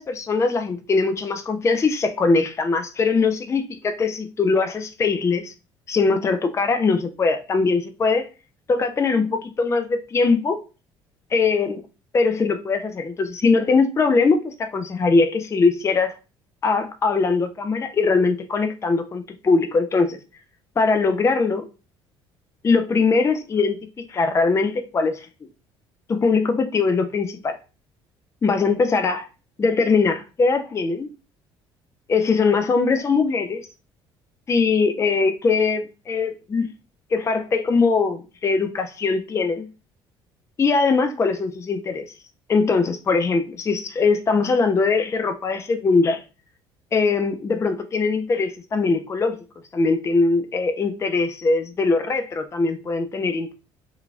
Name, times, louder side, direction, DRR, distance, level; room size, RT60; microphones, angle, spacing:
voice 1, 0.0-5.5 5.9-8.3 8.7-10.6 11.3-11.8 12.1-16.1 16.6-20.2 20.8-21.7 22.6-23.8 24.1-25.3 26.1-27.6 28.4-29.3 29.6-31.1 32.1-33.6 34.5-36.7 37.1-39.7 40.6-42.0 42.5-46.2 46.9-49.4 49.7-53.5, left 4 dB, 20° left, 0.4 m, -21 dB
3.0 x 2.3 x 2.3 m
hypercardioid pair, 55°, 13 cm